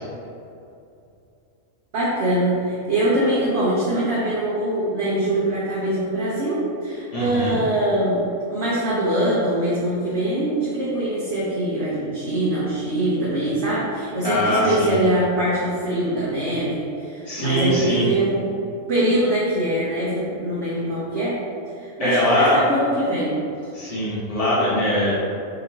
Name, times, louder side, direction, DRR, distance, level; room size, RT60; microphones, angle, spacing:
voice 1, 1.9-8.2 8.5-18.4 18.9-21.3 21.8-23.3, right 1 dB, 60° right, -9 dB, 1.1 m, -23 dB
voice 2, 7.1-7.6 14.2-15.0 17.3-18.1 22.0-22.6 23.7-25.1, equal, 30° left, -7 dB, 1.0 m, -21 dB
3.8 x 2.8 x 4.3 m, 2.6 s
omnidirectional pair, 1.4 m